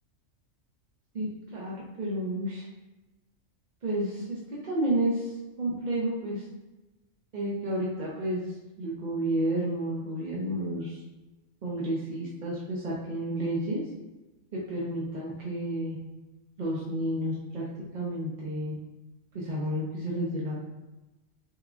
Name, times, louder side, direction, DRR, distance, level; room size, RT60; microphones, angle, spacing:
voice 1, 1.5-2.6 3.8-6.5 7.3-11.0 11.6-13.8 14.7-16.0 16.6-17.7 17.9-18.7 19.3-20.5, right 1 dB, 50° right, -5 dB, 0.6 m, -31 dB
3.4 x 3.0 x 2.4 m, 1.1 s
omnidirectional pair, 1.4 m